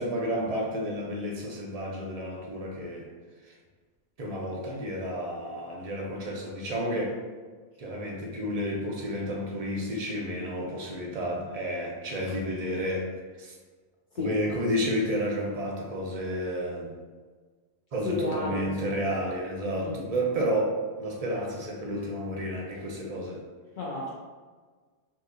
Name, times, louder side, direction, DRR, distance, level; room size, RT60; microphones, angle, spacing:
voice 1, 0.0-3.1 3.4-3.5 4.2-7.2 7.8-13.1 13.4-13.5 14.2-16.9 17.9-23.4, equal, 45° right, -1 dB, 0.5 m, -31 dB
voice 2, 18.0-19.2 19.8-20.0 23.8-24.1, left 2 dB, 55° left, -6 dB, 0.6 m, -32 dB
2.7 x 2.7 x 3.8 m, 1.4 s
omnidirectional pair, 1.2 m